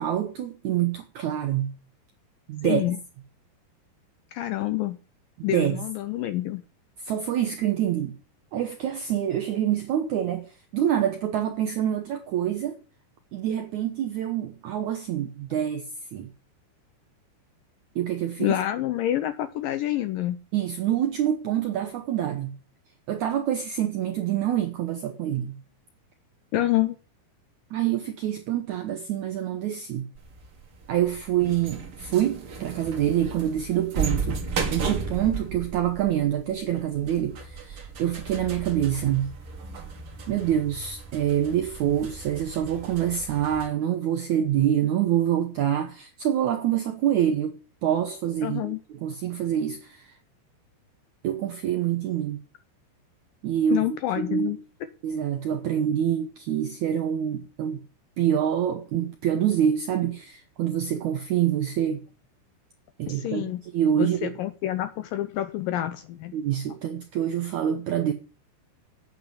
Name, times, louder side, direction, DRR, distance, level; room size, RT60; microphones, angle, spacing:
voice 1, 0.0-1.8 2.5-2.8 5.4-5.8 7.0-8.2 8.5-10.5 10.7-12.8 13.3-16.3 18.0-18.6 20.5-22.6 23.1-25.6 27.7-30.1 30.9-34.4 34.7-39.3 40.3-50.1 51.2-52.4 53.4-53.9 54.2-54.6 55.0-57.8 58.2-62.0 63.0-64.4 66.3-68.1, right 10 dB, 80° right, 1.7 m, -26 dB
voice 2, 2.6-3.0 4.3-5.0 5.4-6.6 18.4-20.4 26.5-27.0 48.4-48.8 53.7-54.6 63.1-63.6 64.0-66.4, left 14 dB, 80° left, 2.1 m, -27 dB
sound 1, 30.1-43.7, right 5 dB, 45° right, 2.0 m, -35 dB
8.9 x 8.1 x 7.1 m
omnidirectional pair, 4.7 m